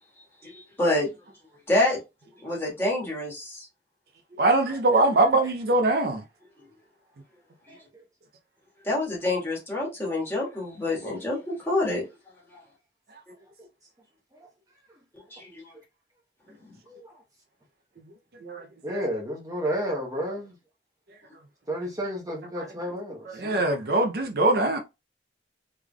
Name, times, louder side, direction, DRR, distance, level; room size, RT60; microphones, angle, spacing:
voice 1, 0.4-1.1 1.7-2.0 2.4-3.7 8.8-12.1 15.3-15.7, left 2 dB, 15° left, 1.4 m, -27 dB
voice 2, 4.4-6.2 18.4-19.0 22.6-22.7 23.3-24.8, right 2 dB, 55° right, 0.5 m, -23 dB
voice 3, 18.8-20.5 21.7-23.6, equal, 20° right, 0.8 m, -32 dB
3.5 x 3.3 x 2.2 m
head